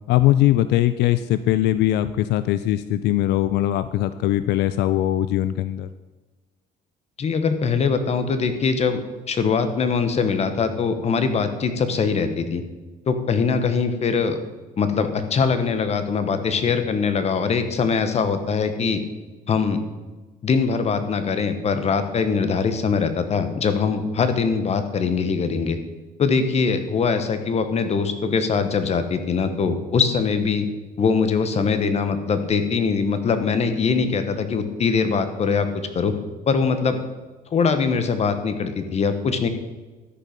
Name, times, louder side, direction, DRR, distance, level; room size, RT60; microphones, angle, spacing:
voice 1, 0.1-5.9, left 14 dB, 80° left, 13 dB, 0.4 m, -20 dB
voice 2, 7.2-9.0 9.3-12.6 13.1-14.4 14.8-19.0 19.5-19.8 20.4-25.8 26.2-30.7 31.0-36.2 36.5-37.0 37.5-39.5, left 5 dB, 40° left, 9 dB, 1.1 m, -22 dB
13.0 x 5.4 x 5.1 m, 1.3 s
cardioid pair, 110°, 17 cm